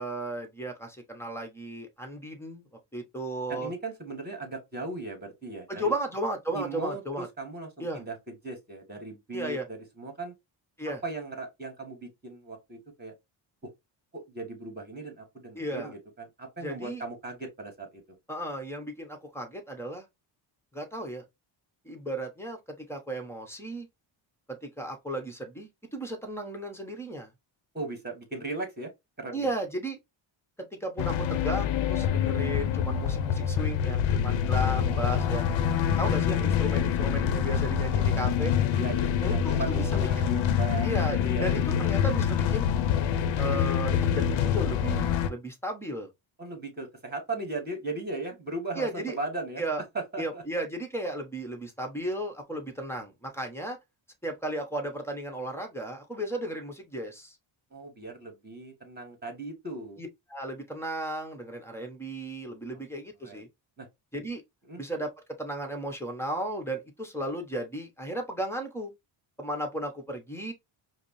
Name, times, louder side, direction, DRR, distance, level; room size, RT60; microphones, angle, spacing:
voice 1, 0.0-2.7 2.9-3.7 5.7-7.3 7.8-8.0 9.3-9.6 10.8-11.0 15.5-15.9 16.6-17.0 18.3-20.1 20.7-21.2 21.8-23.9 24.5-27.3 29.3-30.0 30.6-35.6 36.0-38.6 39.2-40.3 40.8-42.7 43.4-46.1 48.7-49.2 49.6-49.8 50.2-53.8 54.2-57.4 60.0-63.5 64.1-64.4 64.8-65.1 65.4-68.9 69.4-70.5, right 1 dB, 5° left, 1.0 m, -34 dB
voice 2, 3.5-5.9 6.5-10.3 11.0-13.1 14.1-18.0 27.7-28.9 29.2-29.5 38.7-40.9 41.2-41.9 46.4-49.6 49.9-50.4 57.7-60.0 63.2-63.4 63.8-63.9 64.7-64.8, right 2 dB, 20° right, 1.9 m, -37 dB
sound 1, 31.0-45.3, left 8 dB, 70° left, 0.6 m, -26 dB
4.9 x 2.1 x 3.1 m
cardioid pair, 85°, 49 cm